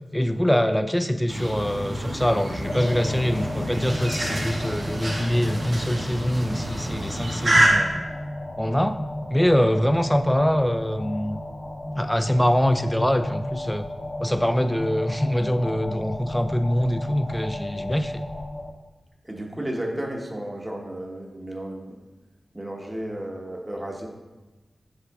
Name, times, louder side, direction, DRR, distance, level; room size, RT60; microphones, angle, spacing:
voice 1, 0.1-8.0 8.6-9.0 9.3-11.4 12.0-13.9 14.2-18.2, equal, 5° left, 8 dB, 0.4 m, -24 dB
sound 1, 1.3-7.7, right 1 dB, 90° right, 2.0 m, -27 dB
sound 2, 2.6-18.7, left 1 dB, 45° left, 0.7 m, -35 dB
voice 2, 19.2-21.9 22.5-24.1, right 1 dB, 20° right, -1 dB, 1.2 m, -33 dB
7.9 x 5.7 x 2.4 m, 1.2 s
cardioid pair, 40°, 0 cm